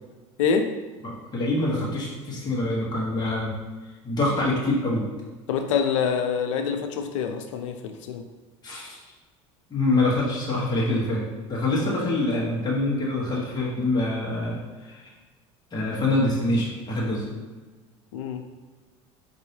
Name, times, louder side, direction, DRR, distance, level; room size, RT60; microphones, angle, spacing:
voice 1, 1.0-3.5 4.0-5.0 8.6-9.0 9.7-11.2 11.5-15.1 15.7-17.2, left 2 dB, 25° left, -6 dB, 1.4 m, -25 dB
voice 2, 5.5-8.2 11.8-12.0 18.1-18.4, left 6 dB, 85° left, 6 dB, 0.5 m, -26 dB
4.6 x 2.7 x 2.9 m, 1.3 s
hypercardioid pair, 85°, 16 cm